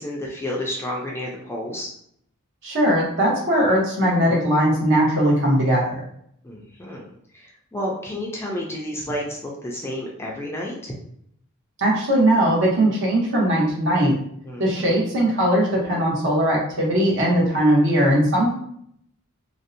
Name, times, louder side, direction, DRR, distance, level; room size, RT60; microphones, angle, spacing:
voice 1, 0.0-1.9 6.4-7.1 7.3-10.9 14.4-14.9, left 1 dB, 10° left, -2 dB, 0.3 m, -31 dB
voice 2, 2.6-6.0 11.8-14.1 14.6-18.5, right 1 dB, 60° right, -3 dB, 0.9 m, -19 dB
2.6 x 2.0 x 2.6 m, 0.70 s
head